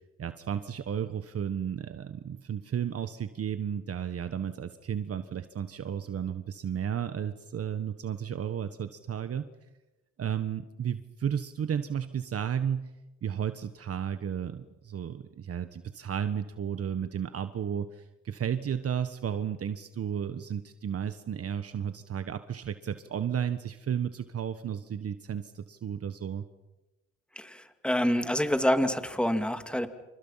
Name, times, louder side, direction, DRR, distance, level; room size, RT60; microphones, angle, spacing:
voice 1, 0.2-9.5 10.2-12.9 13.2-26.4, right 8 dB, 50° right, 10 dB, 1.4 m, -33 dB
voice 2, 27.4-29.9, equal, 5° left, 8 dB, 2.4 m, -27 dB
29.0 x 27.5 x 5.8 m, 1.0 s
cardioid pair, 90°, 30 cm